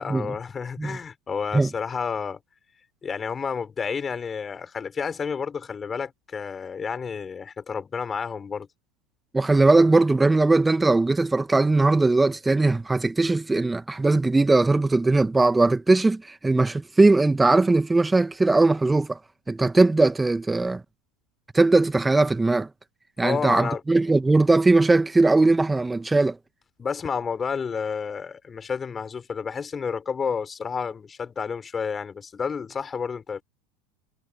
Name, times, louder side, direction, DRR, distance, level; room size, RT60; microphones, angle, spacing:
voice 1, 0.0-2.4 3.0-8.7 23.2-23.8 26.8-33.4, left 6 dB, 25° left, 5.0 m, -30 dB
voice 2, 9.3-19.2 19.5-20.8 21.5-22.7 23.2-26.4, right 3 dB, 10° right, 1.2 m, -20 dB
hypercardioid pair, 85°, 0 cm